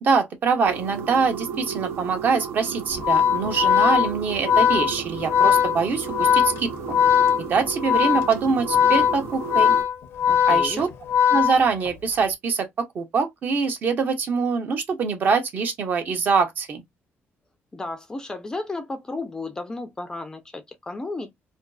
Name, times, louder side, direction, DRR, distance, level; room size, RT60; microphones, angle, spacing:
voice 1, 0.0-7.0 7.4-9.7 10.5-10.9 11.3-16.8, right 5 dB, 45° right, 0.6 m, -24 dB
sound 1, 0.7-9.8, right 7 dB, 80° right, 0.5 m, -34 dB
Organ, 2.9-12.1, left 8 dB, 70° left, 0.5 m, -20 dB
voice 2, 10.3-10.9 17.7-21.3, left 2 dB, 15° left, 0.4 m, -33 dB
2.4 x 2.3 x 2.2 m
cardioid pair, 170°, 4 cm